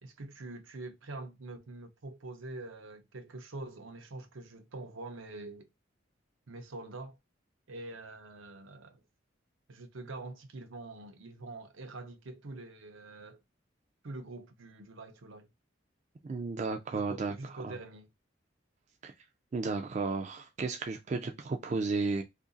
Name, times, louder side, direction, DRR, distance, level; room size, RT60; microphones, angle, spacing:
voice 1, 0.0-5.7 6.5-7.2 7.7-9.0 9.7-13.4 14.0-15.5 16.9-18.1, right 2 dB, 80° right, 0.7 m, -45 dB
voice 2, 16.2-17.3 17.6-17.7 19.0-19.1 19.5-22.2, right 4 dB, 35° right, 0.3 m, -33 dB
2.8 x 2.5 x 3.8 m
head